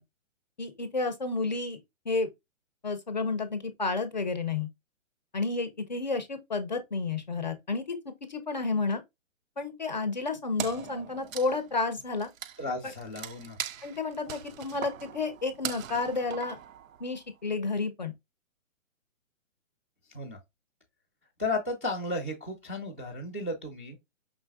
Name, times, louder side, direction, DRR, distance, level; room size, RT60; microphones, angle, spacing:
voice 1, 0.6-1.8 2.1-2.3 2.8-4.7 5.3-8.0 8.3-9.0 9.6-12.3 13.8-16.6 17.0-18.1, left 3 dB, 35° left, 0.5 m, -31 dB
Wood, 10.6-17.3, right 9 dB, 80° right, 0.6 m, -41 dB
voice 2, 12.6-13.6 20.1-20.4 21.4-24.0, left 2 dB, 10° right, 0.5 m, -34 dB
5.3 x 3.5 x 2.3 m
hypercardioid pair, 170°, 39 cm